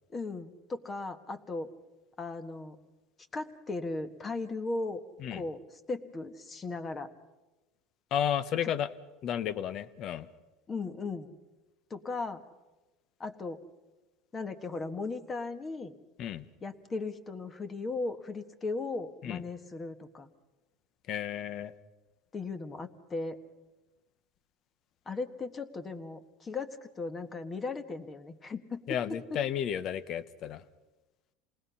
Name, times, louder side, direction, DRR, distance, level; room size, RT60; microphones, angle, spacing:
voice 1, 0.1-1.7 2.2-2.8 3.3-5.0 5.3-5.6 5.9-7.1 8.6-8.7 10.7-11.3 11.9-12.4 13.2-13.6 14.3-15.9 16.6-20.3 22.3-23.4 25.0-28.8, left 3 dB, 20° left, 10 dB, 1.4 m, -37 dB
voice 2, 8.1-8.9 9.2-10.3 16.2-16.5 19.2-19.4 21.1-21.7 28.9-30.6, left 9 dB, 45° left, 15 dB, 1.1 m, -32 dB
28.0 x 19.5 x 5.7 m, 1.1 s
supercardioid pair, 135°, 0 cm